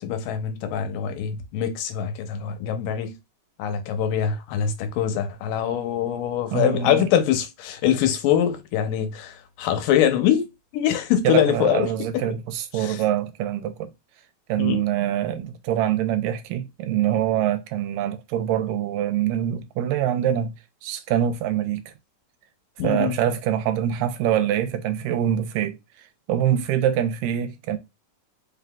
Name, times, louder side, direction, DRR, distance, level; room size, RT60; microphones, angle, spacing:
voice 1, 0.0-3.1 3.6-10.5 10.7-12.2 12.8-13.0 14.6-14.8 22.8-23.1, left 9 dB, 80° left, 2.4 m, -23 dB
voice 2, 6.5-7.1 11.2-13.9 14.5-20.5 20.8-21.8 22.8-25.8 26.3-27.8, right 10 dB, 85° right, 2.3 m, -24 dB
5.2 x 3.8 x 2.2 m
omnidirectional pair, 3.9 m